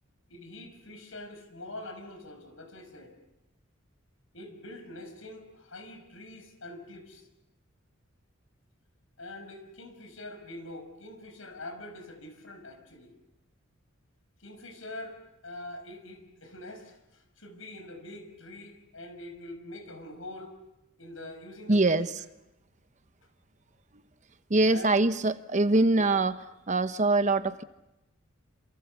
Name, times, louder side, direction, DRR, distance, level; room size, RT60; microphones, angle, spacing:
voice 1, 0.3-3.2 4.3-7.3 9.2-13.1 14.4-20.5 21.0-22.1 24.7-25.1 25.9-26.2, left 1 dB, 80° left, 7 dB, 5.9 m, -44 dB
voice 2, 21.7-22.1 24.5-26.4 26.7-27.6, right 2 dB, 35° right, 11 dB, 0.9 m, -23 dB
27.5 x 27.5 x 6.9 m, 0.94 s
head